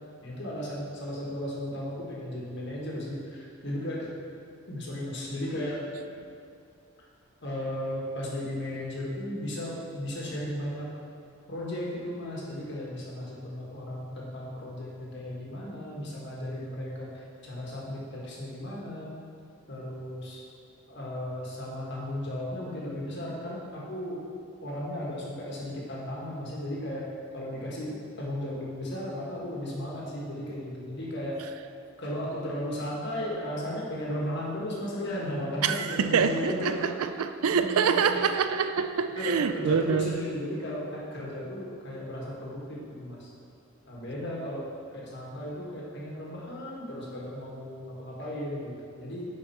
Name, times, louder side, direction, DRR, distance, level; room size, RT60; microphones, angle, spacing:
voice 1, 0.2-4.1 4.7-5.8 7.4-10.9 11.5-19.1 19.7-20.4 20.9-24.2 24.6-27.0 27.3-31.5 32.0-36.9 37.5-38.0 39.1-43.3 43.9-49.3, left 1 dB, 50° left, -4 dB, 1.7 m, -35 dB
voice 2, 35.6-40.2, right 6 dB, 75° right, 9 dB, 0.4 m, -26 dB
9.9 x 4.7 x 4.3 m, 2.5 s
head